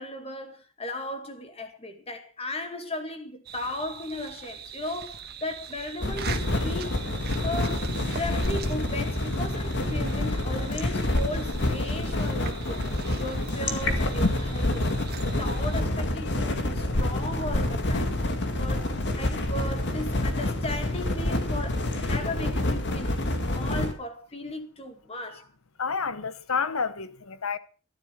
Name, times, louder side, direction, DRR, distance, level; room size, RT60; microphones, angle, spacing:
voice 1, 0.0-7.0 7.4-12.8 13.2-14.9 15.2-18.1 18.6-25.5, left 1 dB, 30° left, 2.2 m, -36 dB
sound 1, 3.4-15.8, right 6 dB, 50° right, 1.5 m, -41 dB
sound 2, 6.0-23.9, left 1 dB, 55° left, 2.1 m, -27 dB
voice 2, 25.8-27.6, left 5 dB, 80° left, 1.0 m, -29 dB
13.5 x 11.5 x 5.3 m
head